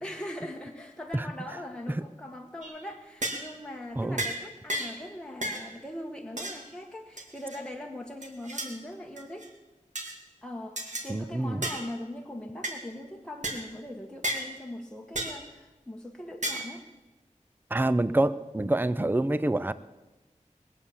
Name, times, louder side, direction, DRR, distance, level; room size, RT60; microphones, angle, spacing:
voice 1, 0.0-9.5 10.4-16.8, left 1 dB, 5° left, 1 dB, 1.4 m, -41 dB
sound 1, 2.6-2.8 3.2-3.5 4.2-4.4 4.7-5.0 5.4-5.7 6.4-6.6 7.2-7.6 8.2-8.7 9.2-9.5 10.0-10.2 10.8-11.1 11.6-11.9 12.6-12.8 13.4-13.6 14.2-14.5 15.2-15.4 16.4-16.7, right 1 dB, 70° right, 2.2 m, -33 dB
voice 2, 11.1-11.6 17.7-19.7, right 1 dB, 15° right, 15 dB, 0.5 m, -26 dB
20.5 x 8.3 x 7.3 m, 1.1 s
wide cardioid pair, 60°, 13 cm